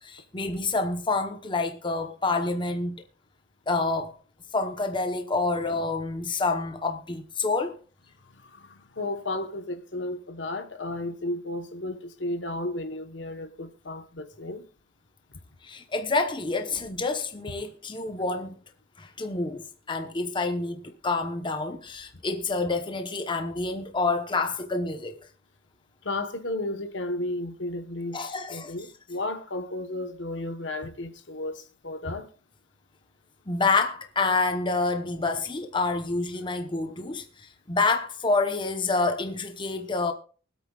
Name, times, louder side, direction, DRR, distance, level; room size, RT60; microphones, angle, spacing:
voice 1, 0.0-3.0 3.7-4.2 4.5-7.7 15.6-18.6 19.0-25.2 28.1-28.7 33.5-40.1, left 3 dB, 25° left, 1.0 m, -28 dB
voice 2, 8.3-14.6 15.3-15.4 26.0-32.3, left 2 dB, 70° left, 1.2 m, -33 dB
24.0 x 8.4 x 2.4 m
head